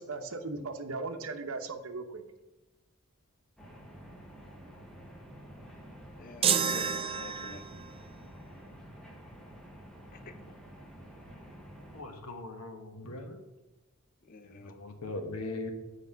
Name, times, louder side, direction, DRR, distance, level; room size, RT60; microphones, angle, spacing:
voice 1, 0.0-2.2, right 3 dB, 70° right, 6 dB, 0.8 m, -37 dB
sound 1, 3.6-12.0, equal, 5° left, 1.0 m, -49 dB
voice 2, 6.2-7.6 10.2-10.5 14.2-14.7, left 3 dB, 40° left, 9 dB, 0.5 m, -48 dB
sound 2, 6.4-7.9, right 7 dB, 25° right, 0.3 m, -29 dB
voice 3, 11.9-13.4 14.6-15.7, left 2 dB, 85° left, 5 dB, 1.2 m, -40 dB
7.0 x 4.8 x 5.5 m, 1.1 s
head